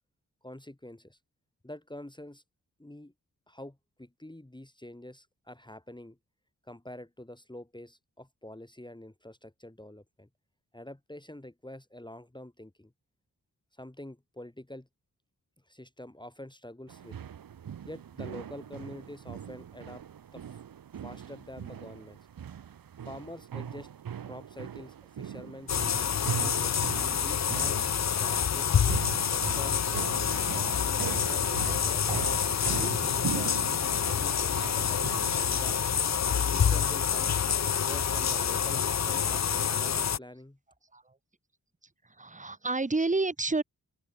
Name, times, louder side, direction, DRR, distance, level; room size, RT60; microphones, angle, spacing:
voice 1, 0.4-1.2 1.6-2.4 2.8-3.1 3.5-6.2 6.7-10.3 10.7-12.9 13.8-14.9 15.7-17.2 17.8-20.0 20.3-20.6 21.0-22.2 23.0-23.9 24.2-28.8 29.3-29.9 30.8-32.2 32.7-35.0 35.4-35.8 36.4-37.3 37.8-40.6, left 1 dB, 10° left, 2.5 m, -46 dB
sound 1, 16.9-35.7, right 8 dB, 65° right, 1.0 m, -40 dB
sound 2, 25.7-40.2, left 8 dB, 45° left, 0.7 m, -27 dB
voice 2, 37.6-37.9 40.9-41.2 42.0-43.6, right 3 dB, 20° right, 1.3 m, -30 dB
open air
cardioid pair, 45°, 37 cm